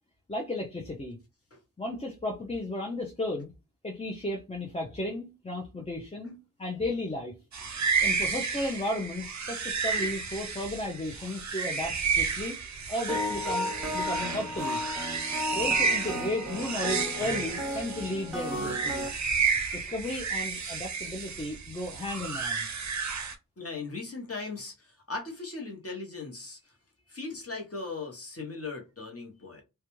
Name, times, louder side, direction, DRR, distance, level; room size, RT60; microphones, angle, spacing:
voice 1, 0.3-1.2 1.8-3.5 3.8-7.4 8.0-12.6 12.9-14.8 15.5-19.1 19.7-22.7, left 1 dB, 15° left, 0.4 m, -34 dB
sound 1, 7.5-23.4, right 5 dB, 50° right, 0.5 m, -31 dB
sound 2, 13.1-19.1, left 1 dB, ahead, 1.1 m, -34 dB
voice 2, 23.6-26.7 27.1-29.6, left 3 dB, 40° left, 0.9 m, -38 dB
2.3 x 2.2 x 3.0 m
wide cardioid pair, 60°, 38 cm